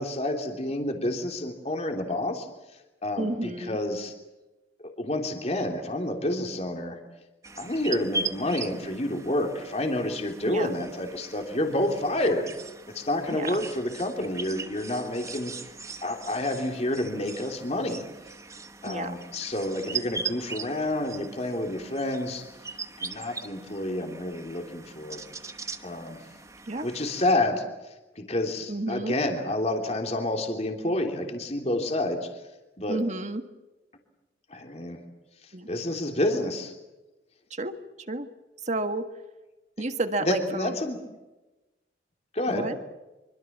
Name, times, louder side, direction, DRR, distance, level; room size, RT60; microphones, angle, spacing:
voice 1, 0.0-2.5 3.0-4.1 4.8-7.0 7.6-12.5 12.9-15.5 16.0-18.0 18.8-22.4 23.0-25.2 25.8-26.2 26.8-32.3 32.8-33.0 34.5-35.0 35.7-36.7 40.2-41.0 42.3-42.7, left 1 dB, 35° left, 3 dB, 3.1 m, -29 dB
voice 2, 3.2-3.8 10.4-10.7 13.3-13.6 18.8-19.2 26.7-26.9 28.7-29.1 32.9-33.4 35.5-35.7 37.5-37.8 38.1-38.3 38.6-39.1 39.8-40.7 42.5-42.8, right 2 dB, 40° right, 8 dB, 1.7 m, -30 dB
sound 1, 7.4-27.3, right 4 dB, 20° right, 1.3 m, -40 dB
25.5 x 25.0 x 7.3 m, 1.1 s
head